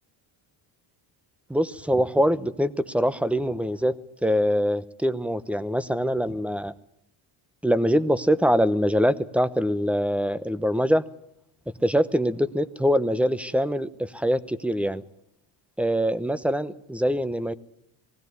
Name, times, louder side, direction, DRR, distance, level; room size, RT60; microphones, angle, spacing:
voice 1, 1.5-3.9 4.2-6.7 7.6-11.0 11.8-15.0 15.8-17.5, equal, 5° right, 15 dB, 0.9 m, -23 dB
19.5 x 16.5 x 9.6 m, 0.76 s
cardioid pair, 95°, 45 cm